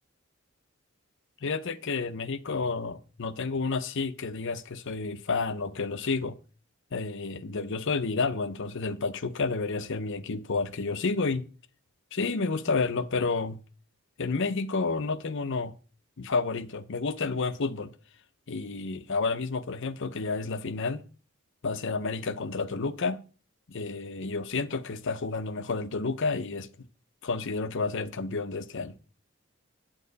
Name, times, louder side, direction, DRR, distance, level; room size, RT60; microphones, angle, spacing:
voice 1, 1.4-6.4 6.9-11.5 12.1-13.6 14.2-15.7 16.2-17.9 18.5-21.0 21.6-23.2 23.7-26.9 27.2-29.0, left 4 dB, 60° left, 0.7 m, -30 dB
9.0 x 8.5 x 4.0 m
head